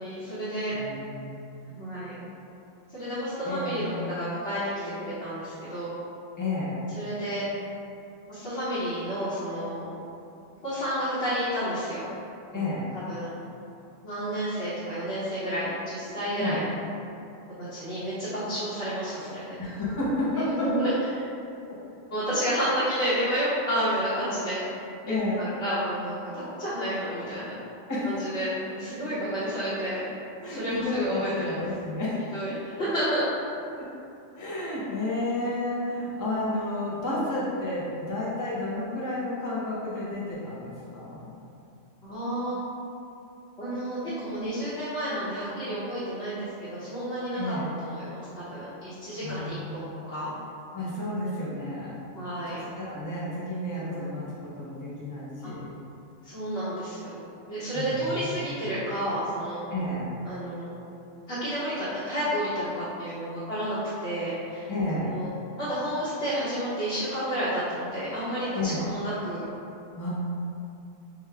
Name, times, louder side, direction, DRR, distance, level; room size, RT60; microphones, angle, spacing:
voice 1, 0.0-0.7 1.7-2.2 2.9-4.7 5.0-5.9 6.9-7.5 8.3-9.9 10.6-12.1 12.5-12.6 12.9-13.4 14.0-16.7 17.6-19.6 20.4-21.2 22.1-24.6 25.4-27.5 28.0-30.0 30.4-31.6 32.3-33.3 42.0-42.6 43.6-50.3 52.1-52.6 53.7-54.1 55.4-55.5 56.2-57.2 57.5-59.6 60.2-60.7 61.3-64.7 65.0-69.5, equal, 60° left, -13 dB, 1.3 m, -31 dB
voice 2, 0.7-1.3 3.4-4.0 6.4-6.8 12.5-12.9 16.3-16.6 19.6-20.9 21.7-21.8 25.1-25.4 27.9-28.1 30.4-32.2 32.4-32.6 33.8-33.9 34.4-41.3 47.3-47.7 49.2-49.8 50.7-52.0 52.5-55.7 57.7-58.3 59.7-60.1 64.7-65.1 68.5-68.8 70.0-70.1, left 2 dB, 25° left, -7 dB, 0.4 m, -31 dB
4.9 x 2.2 x 3.3 m, 2.6 s
omnidirectional pair, 1.3 m